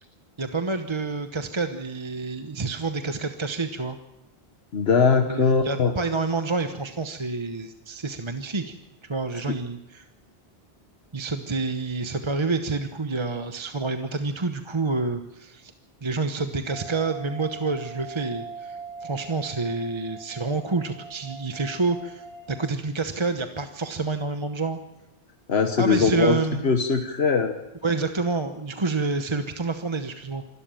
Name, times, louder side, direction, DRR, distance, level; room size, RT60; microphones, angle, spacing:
voice 1, 0.4-4.0 5.3-8.7 9.0-10.1 11.1-15.7 16.0-24.8 25.8-26.7 27.8-30.4, right 3 dB, 30° right, 8 dB, 1.0 m, -28 dB
voice 2, 4.7-5.9 25.5-26.4 26.6-27.5, left 5 dB, 80° left, 6 dB, 1.5 m, -21 dB
sound 1, 16.7-22.7, right 5 dB, 55° right, 3.7 m, -41 dB
26.5 x 13.0 x 9.0 m, 0.90 s
omnidirectional pair, 1.1 m